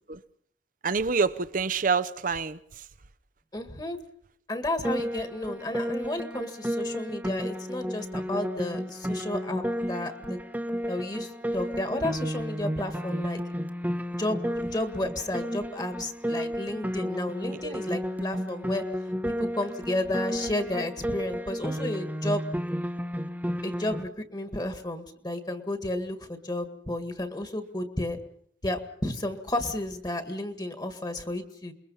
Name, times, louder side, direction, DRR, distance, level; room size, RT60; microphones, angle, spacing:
voice 1, 0.8-2.8 17.6-17.7, right 5 dB, 50° right, 14 dB, 0.8 m, -27 dB
voice 2, 3.5-4.0 4.5-10.4 10.9-13.4 14.2-14.4 14.7-18.8 19.3-22.4 23.6-28.2 28.6-31.7, left 1 dB, 25° left, 8 dB, 1.8 m, -32 dB
Piano, 4.8-24.0, equal, 10° right, 1.1 m, -32 dB
28.0 x 22.0 x 5.6 m, 0.66 s
head